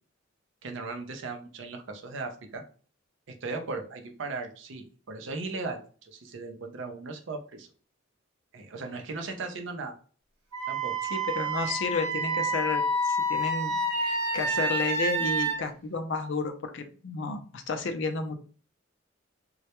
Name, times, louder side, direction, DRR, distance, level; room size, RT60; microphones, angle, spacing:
voice 1, 0.6-2.6 3.4-7.7 8.5-9.9 10.7-10.9, right 3 dB, 60° right, 4 dB, 0.5 m, -37 dB
Wind instrument woodwind instrument, 10.5-15.6, right 1 dB, 90° right, 0.9 m, -28 dB
voice 2, 11.1-18.4, left 4 dB, 60° left, 7 dB, 0.4 m, -32 dB
2.2 x 2.1 x 2.8 m, 0.39 s
head